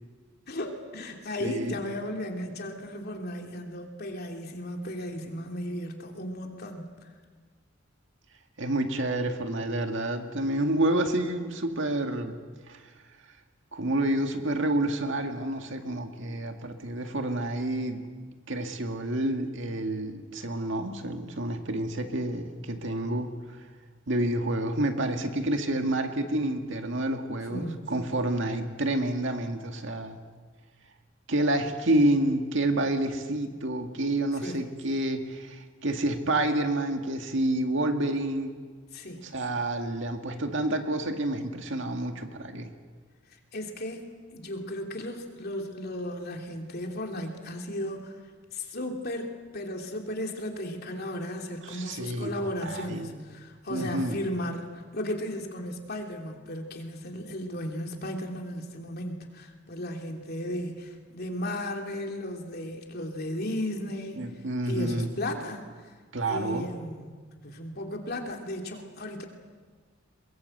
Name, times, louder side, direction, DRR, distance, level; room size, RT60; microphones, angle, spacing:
voice 1, 0.5-7.1 27.5-27.9 34.4-34.6 38.9-39.3 43.5-48.2 48.5-64.2 64.6-65.6 66.3-67.1 67.4-69.3, left 1 dB, 55° left, 2 dB, 3.1 m, -35 dB
voice 2, 1.4-1.8 8.6-12.4 12.7-12.8 13.7-18.0 18.5-23.3 24.1-30.2 31.3-38.5 39.3-42.7 51.6-52.3 52.6-53.1 53.7-54.2 64.2-65.1 66.1-66.7, right 1 dB, 65° right, 5 dB, 2.1 m, -29 dB
22.5 x 22.0 x 8.0 m, 1.6 s
head